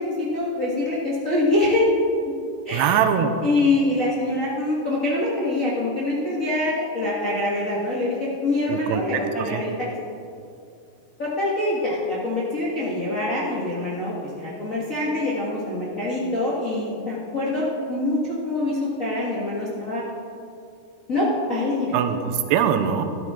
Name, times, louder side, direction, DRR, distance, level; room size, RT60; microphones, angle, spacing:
voice 1, 0.0-1.9 2.6-3.0 3.4-9.9 11.2-18.2 18.4-20.0 21.1-22.0, left 2 dB, 70° left, -7 dB, 0.7 m, -24 dB
voice 2, 2.7-3.4 8.7-9.6 21.9-23.1, right 8 dB, 90° right, 7 dB, 2.8 m, -22 dB
14.5 x 12.0 x 3.7 m, 2.5 s
omnidirectional pair, 4.6 m